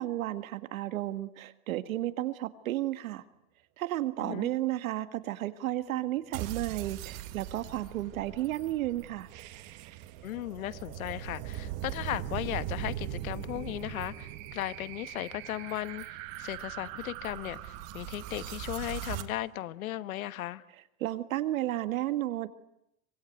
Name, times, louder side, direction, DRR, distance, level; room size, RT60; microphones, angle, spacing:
voice 1, 0.0-3.2 3.8-9.3 21.0-22.5, right 14 dB, 75° right, 1.9 m, -33 dB
sound 1, 6.3-19.2, right 12 dB, 35° right, 1.5 m, -40 dB
voice 2, 10.2-16.0 16.4-20.6, left 14 dB, 85° left, 1.2 m, -36 dB
25.0 x 21.0 x 9.5 m
supercardioid pair, 175°, 41 cm